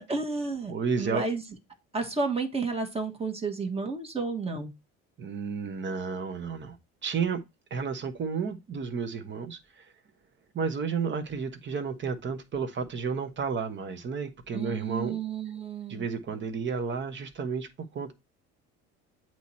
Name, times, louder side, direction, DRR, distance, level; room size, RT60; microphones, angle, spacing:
voice 1, 0.0-1.4 1.9-4.7 14.5-16.0, right 4 dB, 20° right, 1.4 m, -31 dB
voice 2, 0.7-1.3 5.2-6.8 7.0-7.4 7.7-9.9 10.5-15.2 15.9-18.1, right 5 dB, 35° right, 1.2 m, -32 dB
8.0 x 3.1 x 4.1 m
supercardioid pair, 95°, 31 cm